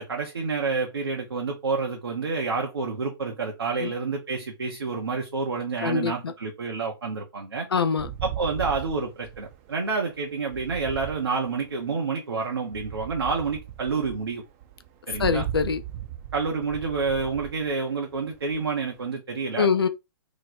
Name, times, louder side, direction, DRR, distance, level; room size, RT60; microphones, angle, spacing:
voice 1, 0.0-7.7 8.2-14.4 15.1-15.5 16.3-19.7, right 4 dB, 75° right, 0.9 m, -29 dB
voice 2, 5.8-6.3 7.7-8.1 15.2-15.8 19.6-19.9, left 5 dB, 75° left, 0.6 m, -24 dB
sound 1, 8.0-12.0 12.7-19.0, right 11 dB, 35° right, 0.6 m, -38 dB
3.0 x 2.1 x 4.1 m
figure-of-eight pair, 125°, 13 cm